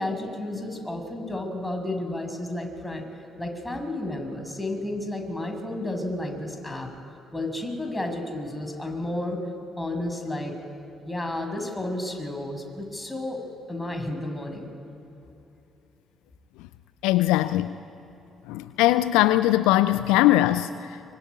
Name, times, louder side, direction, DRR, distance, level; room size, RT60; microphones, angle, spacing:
voice 1, 0.0-3.0 3.4-6.9 7.3-9.4 9.8-10.6 11.0-14.7, left 1 dB, 10° left, 4 dB, 6.8 m, -32 dB
voice 2, 17.0-17.7 18.5-21.2, left 15 dB, 70° left, 14 dB, 0.5 m, -21 dB
24.5 x 24.0 x 9.8 m, 2.9 s
figure-of-eight pair, 45°, 0 cm